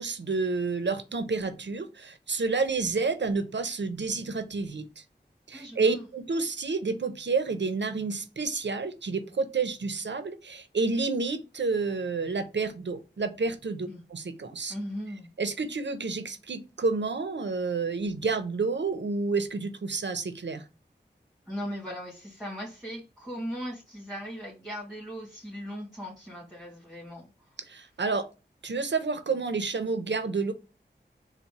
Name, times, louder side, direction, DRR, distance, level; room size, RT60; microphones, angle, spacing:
voice 1, 0.0-5.0 5.5-14.7 15.4-20.6 27.7-28.2 28.6-30.5, right 4 dB, 80° right, 9 dB, 0.6 m, -29 dB
voice 2, 5.5-6.0 13.8-14.0 14.7-15.3 21.5-27.6, equal, ahead, -5 dB, 2.0 m, -38 dB
4.1 x 2.2 x 4.5 m, 0.30 s
wide cardioid pair, 40°, 19 cm